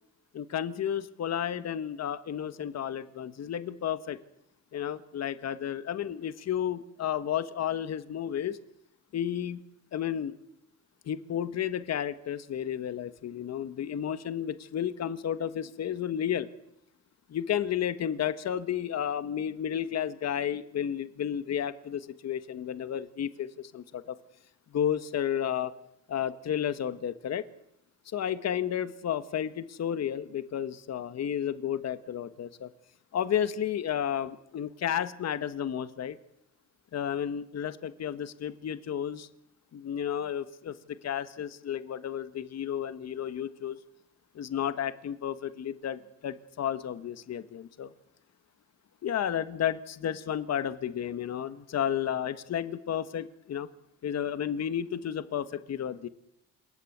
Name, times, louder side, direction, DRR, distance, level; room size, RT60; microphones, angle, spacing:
voice 1, 0.3-4.2 4.7-8.6 9.1-9.6 9.9-10.3 11.0-16.5 17.3-24.2 24.7-25.7 26.1-27.4 28.1-32.7 33.1-36.2 36.9-39.3 39.7-40.8 41.0-43.8 44.3-47.9 49.0-53.7 54.0-56.1, left 9 dB, 60° left, 12 dB, 1.5 m, -32 dB
28.0 x 22.0 x 8.1 m, 0.82 s
cardioid pair, 90°, 30 cm